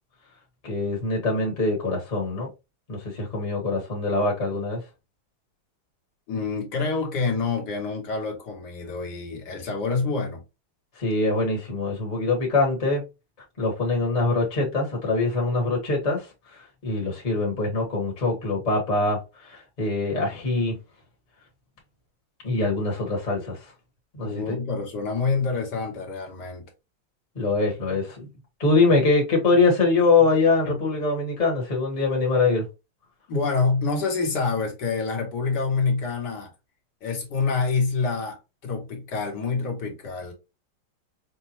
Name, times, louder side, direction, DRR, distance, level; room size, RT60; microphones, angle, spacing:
voice 1, 0.6-2.5 2.9-4.8 11.0-13.0 13.6-16.3 16.5-20.7 22.4-23.6 24.1-24.6 27.3-28.2 28.6-32.6, left 3 dB, 25° left, 1.3 m, -23 dB
voice 2, 6.3-10.4 24.2-26.6 30.6-30.8 33.3-36.5 37.0-40.3, left 4 dB, 55° left, 1.7 m, -27 dB
5.4 x 2.2 x 3.0 m
omnidirectional pair, 2.3 m